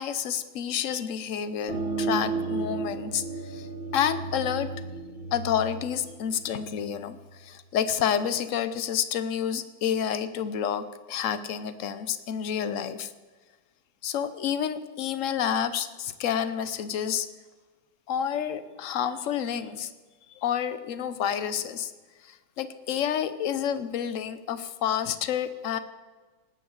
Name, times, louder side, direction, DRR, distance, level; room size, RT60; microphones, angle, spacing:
voice 1, 0.0-3.7 3.9-4.7 5.3-13.1 14.0-17.3 18.1-19.9 20.4-21.9 22.2-25.8, left 9 dB, 55° left, 12 dB, 0.9 m, -29 dB
sound 1, 1.7-7.1, right 4 dB, 80° right, 3.1 m, -33 dB
19.0 x 7.9 x 6.6 m, 1.3 s
omnidirectional pair, 2.1 m